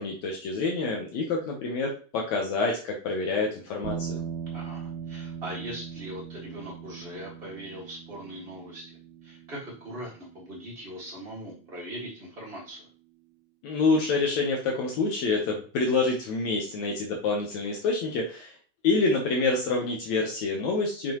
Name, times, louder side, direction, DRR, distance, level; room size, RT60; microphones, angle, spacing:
voice 1, 0.0-4.2 13.6-18.5 18.8-21.1, left 3 dB, 90° left, 0 dB, 1.5 m, -27 dB
sound 1, 3.8-12.2, right 7 dB, 90° right, 2.8 m, -40 dB
voice 2, 4.5-12.9, right 1 dB, 75° right, -4 dB, 0.5 m, -40 dB
7.7 x 5.2 x 3.0 m, 0.38 s
omnidirectional pair, 4.8 m